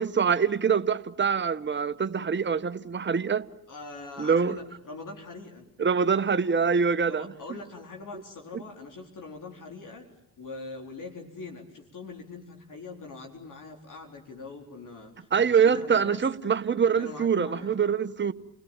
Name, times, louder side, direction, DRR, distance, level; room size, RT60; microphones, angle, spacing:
voice 1, 0.0-3.5 4.2-4.6 5.8-7.3 15.3-18.3, right 6 dB, 30° right, 1.2 m, -24 dB
voice 2, 3.7-5.7 7.1-10.1 10.4-16.2 17.0-17.7, left 3 dB, 55° left, 4.1 m, -42 dB
30.0 x 18.0 x 9.0 m
supercardioid pair, 60°, 38 cm